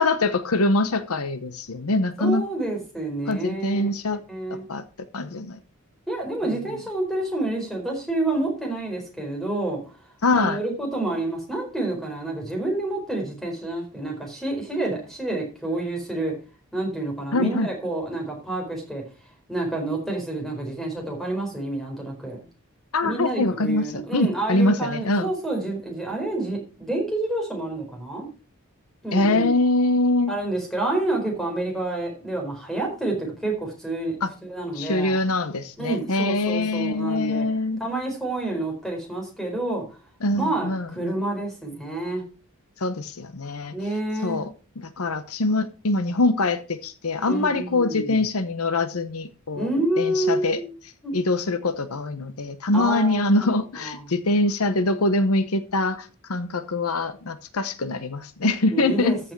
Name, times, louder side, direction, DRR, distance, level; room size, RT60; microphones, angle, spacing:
voice 1, 0.0-2.5 3.3-4.2 4.7-4.8 5.1-5.6 10.2-10.6 17.3-17.7 22.9-25.3 29.1-30.3 34.2-34.3 34.7-37.8 40.2-41.1 42.8-43.7 44.2-44.5 44.8-49.7 50.0-50.6 51.1-59.1, left 2 dB, 80° left, 0.9 m, -23 dB
voice 2, 2.2-3.8 4.3-4.6 6.1-9.8 10.4-16.3 16.7-19.0 19.5-22.5 23.0-28.3 29.0-29.5 30.3-34.2 34.4-35.2 35.8-37.5 37.8-40.0 40.3-42.2 43.7-44.4 47.3-48.2 49.5-50.7 51.0-51.1 52.7-53.2 53.8-54.0 58.7-59.3, right 2 dB, ahead, 4.5 m, -28 dB
14.0 x 6.2 x 4.7 m
head